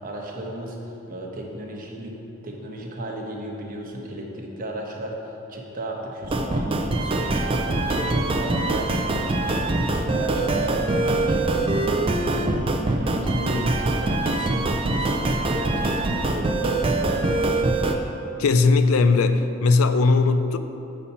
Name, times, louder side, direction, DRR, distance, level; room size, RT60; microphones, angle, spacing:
voice 1, 0.0-2.1 2.4-17.5, right 1 dB, 40° right, -1 dB, 1.0 m, -34 dB
sound 1, 6.2-18.0, right 2 dB, 25° right, 0.4 m, -23 dB
voice 2, 18.4-20.6, left 3 dB, 80° left, 10 dB, 0.4 m, -18 dB
8.2 x 4.2 x 5.6 m, 2.9 s
head